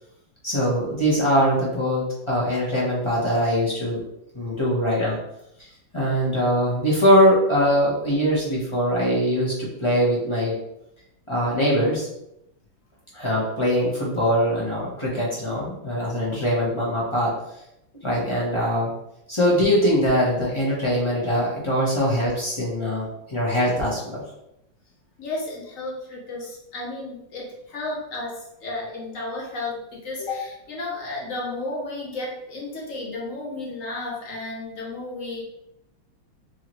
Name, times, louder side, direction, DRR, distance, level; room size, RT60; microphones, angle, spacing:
voice 1, 0.4-4.0 4.3-5.2 5.9-10.6 11.3-12.1 13.1-17.3 18.0-18.9 19.3-24.2, equal, 25° left, -6 dB, 0.6 m, -22 dB
voice 2, 25.2-35.4, left 2 dB, 50° left, -2 dB, 1.1 m, -33 dB
4.7 x 2.9 x 3.0 m, 0.82 s
omnidirectional pair, 2.1 m